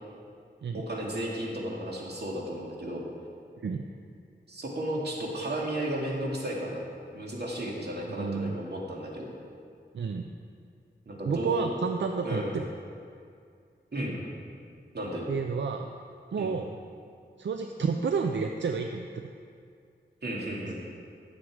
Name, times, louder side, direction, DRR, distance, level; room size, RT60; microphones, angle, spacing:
voice 1, 0.7-3.1 4.5-6.8 7.1-9.3 11.1-11.7 12.2-12.5 13.9-14.2 14.9-15.3 16.4-16.5 20.2-20.7, right 1 dB, 65° right, -2 dB, 2.4 m, -34 dB
voice 2, 8.1-8.5 9.9-10.3 11.2-12.7 15.3-15.9 16.3-16.7 17.4-19.3, right 5 dB, 90° right, 5 dB, 0.6 m, -30 dB
17.5 x 7.4 x 4.9 m, 2.3 s
wide cardioid pair, 75°, 18 cm